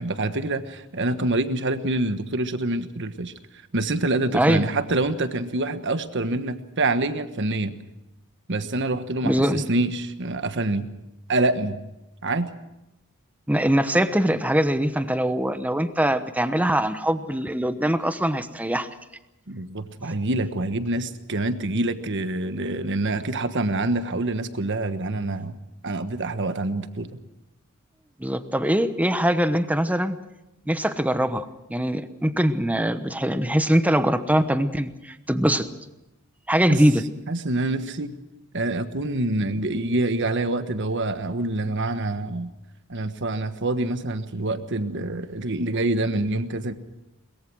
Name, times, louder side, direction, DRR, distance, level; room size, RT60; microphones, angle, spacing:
voice 1, 0.0-3.3 3.7-7.7 8.5-10.9 11.3-11.8 12.2-12.5 19.5-25.6 25.8-27.1 36.7-36.8 37.3-38.1 38.5-42.5 42.9-46.7, right 2 dB, 55° right, 10 dB, 1.4 m, -26 dB
voice 2, 4.3-4.6 9.2-9.6 13.5-18.9 28.2-30.2 30.7-35.7 36.5-37.0, equal, 5° right, 10 dB, 1.0 m, -22 dB
22.5 x 21.0 x 6.3 m, 0.95 s
head